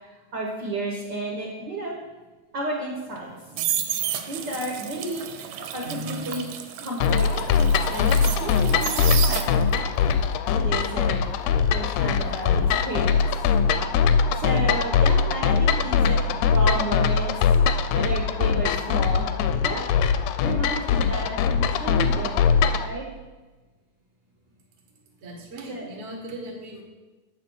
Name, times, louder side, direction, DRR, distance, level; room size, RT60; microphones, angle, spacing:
voice 1, 0.0-1.9 2.5-3.6 4.3-5.2 5.7-6.5 6.8-7.6 7.9-9.6 10.5-11.2 11.7-13.2 14.3-17.3 17.9-20.0 20.4-23.1 25.7-25.8, right 1 dB, 55° right, -3 dB, 1.2 m, -32 dB
sound 1, 3.1-9.9 10.2-13.1 13.4-13.7, right 10 dB, 80° right, 1.9 m, -32 dB
voice 2, 5.8-6.2 24.9-26.8, equal, 40° right, 1 dB, 0.9 m, -38 dB
sound 2, 7.0-22.9, left 6 dB, 80° left, 1.6 m, -22 dB
8.2 x 5.0 x 6.1 m, 1.2 s
omnidirectional pair, 3.3 m